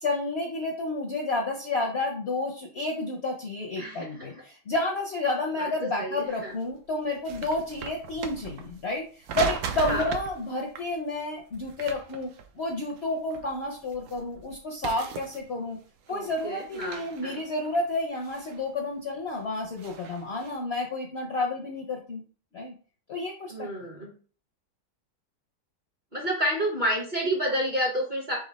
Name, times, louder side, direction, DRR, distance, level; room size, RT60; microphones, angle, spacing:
voice 1, 0.0-12.3 12.6-15.8 16.1-22.2 22.5-22.7 23.1-23.7, left 2 dB, 60° left, 0 dB, 0.7 m, -30 dB
voice 2, 3.8-4.4 5.6-5.7 6.0-6.5 9.8-10.1 16.1-17.4 23.5-24.1 26.1-28.4, equal, 40° right, -1 dB, 0.8 m, -30 dB
sound 1, 6.2-6.3 6.7-8.9 9.2-10.4 10.7-10.9 11.5-13.0 13.3-14.6 14.8-15.7 16.1-18.7 19.2-20.6, right 6 dB, 70° right, 1.1 m, -38 dB
4.2 x 2.8 x 4.0 m, 0.40 s
omnidirectional pair, 1.8 m